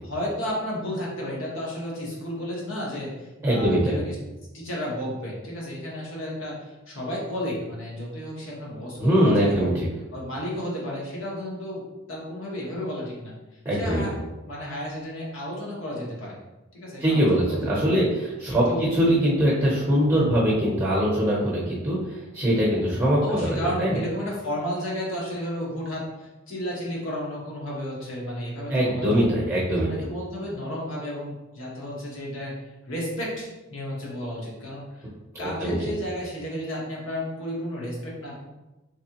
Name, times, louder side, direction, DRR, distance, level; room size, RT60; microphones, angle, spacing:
voice 1, 0.0-4.1 4.5-9.7 10.1-11.8 12.1-13.3 13.7-14.1 14.4-16.4 16.7-18.0 18.5-18.8 23.2-29.0 29.9-32.5 32.9-35.0 35.4-38.4, equal, 75° left, -4 dB, 1.3 m, -32 dB
voice 2, 3.4-4.0 9.0-9.9 13.6-14.0 17.0-22.0 22.3-24.0 28.7-30.1 35.4-35.7, equal, 15° right, -5 dB, 0.8 m, -22 dB
3.5 x 3.3 x 2.9 m, 1.0 s
head